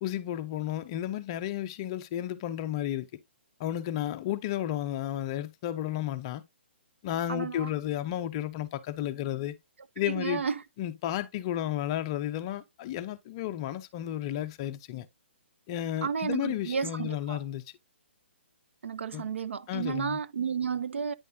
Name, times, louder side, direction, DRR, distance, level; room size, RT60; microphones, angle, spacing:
voice 1, 0.0-3.1 3.6-6.4 7.0-9.5 10.0-10.4 10.8-15.1 15.7-17.6 19.1-19.3 19.7-20.2, left 12 dB, 25° left, 0.6 m, -32 dB
voice 2, 7.3-7.7 10.1-10.6 16.0-17.4 18.8-21.1, right 6 dB, 80° right, 0.8 m, -32 dB
9.4 x 5.3 x 2.7 m
hypercardioid pair, 165°, 7 cm